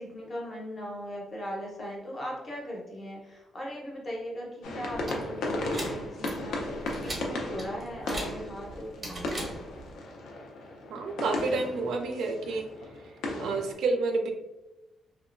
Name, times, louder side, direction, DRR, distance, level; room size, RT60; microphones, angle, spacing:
voice 1, 0.0-9.3, equal, 25° left, -3 dB, 0.6 m, -39 dB
sound 1, 4.6-13.7, left 2 dB, 80° left, 0.5 m, -36 dB
sound 2, 4.9-9.9, right 1 dB, 15° right, 0.6 m, -41 dB
voice 2, 10.9-12.7 13.4-14.3, right 3 dB, 70° right, 4 dB, 0.3 m, -29 dB
2.8 x 2.1 x 2.4 m, 1.0 s
cardioid pair, 165°, 0 cm